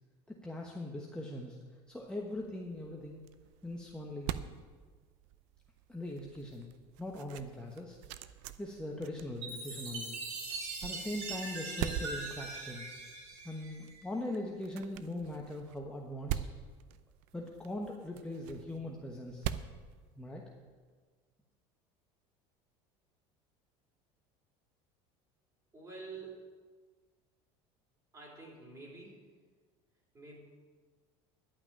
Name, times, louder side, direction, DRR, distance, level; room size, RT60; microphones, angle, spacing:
voice 1, 0.3-1.6 1.9-3.2 3.6-4.3 5.9-6.7 7.0-8.0 8.6-10.2 10.8-12.8 13.4-16.4 17.3-19.5 20.2-20.4, left 1 dB, 5° left, -2 dB, 1.2 m, -41 dB
sound 1, 2.0-20.7, right 11 dB, 75° right, 0.6 m, -44 dB
Chime, 9.4-14.1, right 3 dB, 90° right, 2.8 m, -41 dB
voice 2, 25.7-26.3 28.1-29.1 30.1-30.4, right 4 dB, 25° right, -2 dB, 4.3 m, -47 dB
11.0 x 5.9 x 8.8 m, 1.5 s
supercardioid pair, 110°, 14 cm